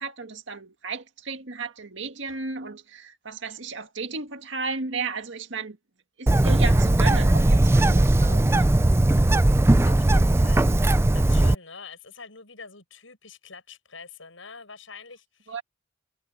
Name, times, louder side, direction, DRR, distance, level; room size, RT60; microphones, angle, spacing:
voice 1, 0.0-5.8 6.2-8.7 15.5-15.6, right 4 dB, 65° right, 2.0 m, -34 dB
Bird, 6.3-11.5, right 1 dB, 15° right, 0.4 m, -19 dB
voice 2, 9.8-15.6, left 5 dB, 80° left, 7.1 m, -45 dB
head